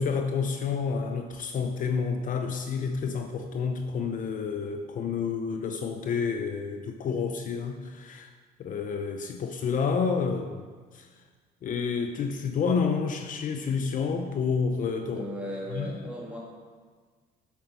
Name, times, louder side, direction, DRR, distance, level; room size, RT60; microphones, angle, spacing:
voice 1, 0.0-8.3 8.6-10.6 10.9-11.1 11.6-15.2 15.7-15.9, left 5 dB, 50° left, 6 dB, 0.8 m, -29 dB
voice 2, 15.1-16.4, equal, 5° right, -5 dB, 3.2 m, -36 dB
8.6 x 7.6 x 6.2 m, 1.5 s
cardioid pair, 110°, 17 cm